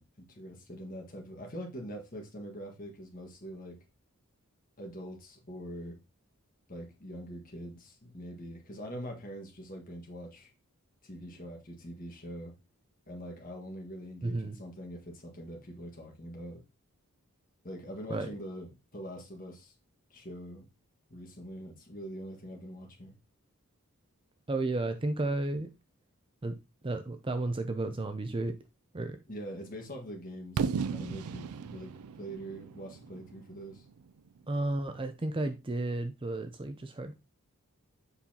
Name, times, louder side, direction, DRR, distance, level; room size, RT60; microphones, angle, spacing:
voice 1, 0.0-3.8 4.8-6.0 6.7-10.5 11.0-12.5 13.1-16.6 17.6-19.7 20.1-20.7 21.1-23.1 29.3-31.9 32.2-33.8, equal, 40° left, 1.6 m, -43 dB
voice 2, 14.2-14.6 18.1-18.3 24.5-25.7 26.4-26.5 26.8-28.5 28.9-29.2 34.5-37.1, right 2 dB, 25° right, 0.5 m, -32 dB
Fireworks, 30.6-34.4, right 6 dB, 80° right, 0.4 m, -36 dB
7.0 x 5.5 x 2.8 m
head